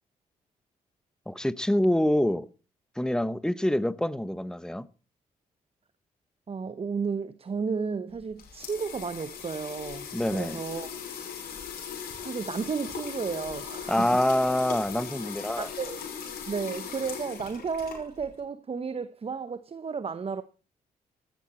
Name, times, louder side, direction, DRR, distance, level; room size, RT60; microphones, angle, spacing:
voice 1, 1.3-2.5 3.0-4.9 10.1-10.6 13.9-15.7, left 1 dB, 5° left, 1.0 m, -26 dB
voice 2, 6.5-10.9 12.2-14.1 15.6-16.1 16.5-20.4, right 5 dB, 40° right, 1.0 m, -33 dB
sound 1, 8.1-18.4, left 7 dB, 80° left, 5.6 m, -39 dB
16.5 x 12.5 x 4.4 m
supercardioid pair, 60°, 15 cm